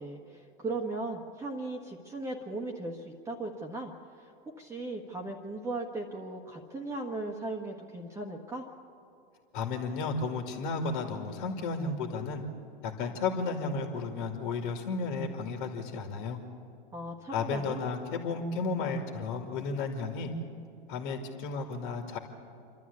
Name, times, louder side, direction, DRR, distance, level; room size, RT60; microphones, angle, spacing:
voice 1, 0.0-4.3 4.6-8.6 16.9-17.9, right 2 dB, 10° right, 0 dB, 1.4 m, -37 dB
voice 2, 9.5-12.4 12.8-16.4 17.3-20.3 20.9-22.2, left 4 dB, 60° left, 4 dB, 2.4 m, -33 dB
28.0 x 12.5 x 8.4 m, 2.7 s
hypercardioid pair, 120°, 29 cm